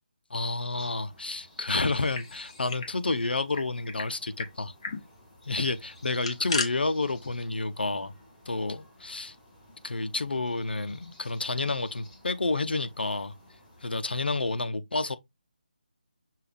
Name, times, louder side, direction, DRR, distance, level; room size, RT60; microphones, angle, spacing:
voice 1, 0.3-4.7 5.5-8.1 8.5-9.4 9.8-13.3 13.8-15.2, left 3 dB, 90° left, 0.7 m, -30 dB
sound 1, 0.7-14.6, left 1 dB, 10° left, 1.2 m, -55 dB
sound 2, 1.8-2.9 3.2-3.3 3.5-4.1 4.4-4.5 4.8-5.0 6.0-6.7, left 4 dB, 35° left, 0.9 m, -34 dB
5.6 x 2.4 x 3.4 m
figure-of-eight pair, 170°, 5 cm